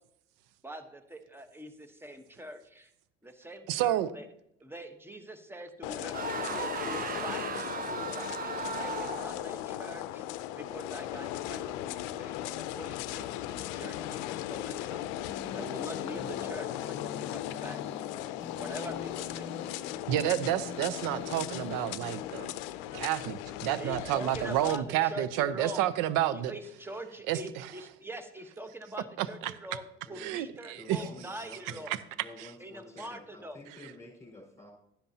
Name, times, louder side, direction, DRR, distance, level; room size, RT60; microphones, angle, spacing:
voice 1, 0.6-2.9 3.2-4.3 4.6-6.1 6.5-10.2 10.5-15.0 15.5-17.8 18.5-19.6 23.7-25.9 26.3-31.9 32.6-33.6, right 1 dB, 5° right, 8 dB, 1.1 m, -44 dB
voice 2, 3.7-4.1 20.1-22.5 22.9-26.5 27.3-27.4 29.2-29.5 30.2-31.0 31.9-32.0 32.4-32.5, right 12 dB, 70° right, 16 dB, 0.7 m, -30 dB
sound 1, 5.8-24.8, left 13 dB, 75° left, 0.6 m, -37 dB
sound 2, 6.1-9.5, right 7 dB, 25° right, 0.4 m, -36 dB
sound 3, 15.3-22.7, left 5 dB, 35° left, 0.9 m, -45 dB
voice 3, 30.8-31.8 32.2-34.7, left 2 dB, 10° left, -7 dB, 4.6 m, -50 dB
12.0 x 10.0 x 2.8 m, 0.77 s
hypercardioid pair, 75°, 33 cm